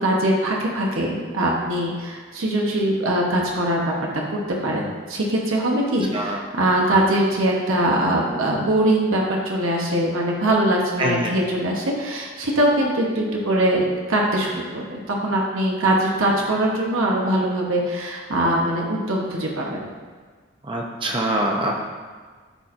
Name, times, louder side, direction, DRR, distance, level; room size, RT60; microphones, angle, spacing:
voice 1, 0.0-3.9 4.3-19.9, right 1 dB, 85° right, -1 dB, 1.1 m, -22 dB
voice 2, 11.0-11.3 20.7-21.8, right 1 dB, 25° right, 0 dB, 0.7 m, -24 dB
12.5 x 4.3 x 2.6 m, 1.5 s
head